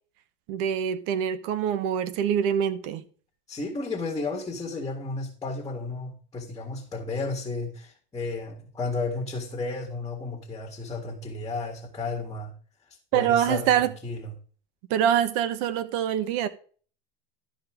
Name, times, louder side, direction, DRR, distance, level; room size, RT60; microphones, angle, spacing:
voice 1, 0.5-3.0 13.1-13.9 14.9-16.5, right 9 dB, 60° right, 1.1 m, -25 dB
voice 2, 3.5-12.5 13.1-14.3, left 3 dB, 10° left, 1.8 m, -33 dB
12.5 x 5.1 x 4.8 m
supercardioid pair, 130°, 29 cm